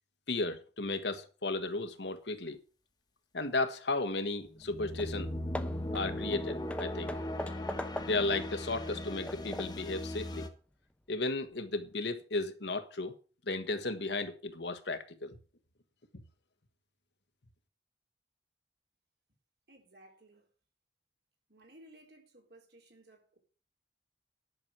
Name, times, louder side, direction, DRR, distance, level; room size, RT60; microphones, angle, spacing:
voice 1, 0.3-2.6 3.3-5.3 5.9-7.1 8.0-10.5 11.1-13.1 13.5-15.4 16.1-16.2, left 2 dB, 75° left, 1.5 m, -34 dB
sound 1, 4.5-10.5, left 1 dB, 25° left, 1.4 m, -38 dB
Hammer / Wood, 4.6-4.7 5.0-5.2 5.5-8.4 8.9-9.9, left 1 dB, 5° left, 0.9 m, -42 dB
voice 2, 19.7-20.5 21.5-23.4, right 1 dB, 60° right, 3.8 m, -58 dB
11.0 x 6.4 x 7.5 m
head